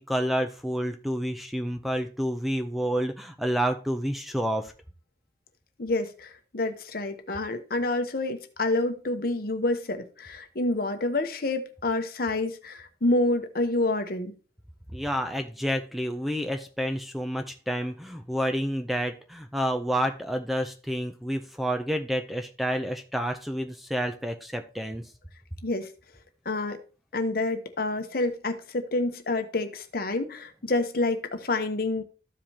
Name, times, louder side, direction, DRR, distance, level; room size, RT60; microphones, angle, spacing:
voice 1, 0.0-4.7 14.9-25.1, equal, ahead, 0.5 m, -29 dB
voice 2, 5.8-14.3 25.6-25.9 26.4-26.8 27.1-32.0, left 2 dB, 55° left, 1.0 m, -28 dB
13.5 x 5.0 x 2.8 m
head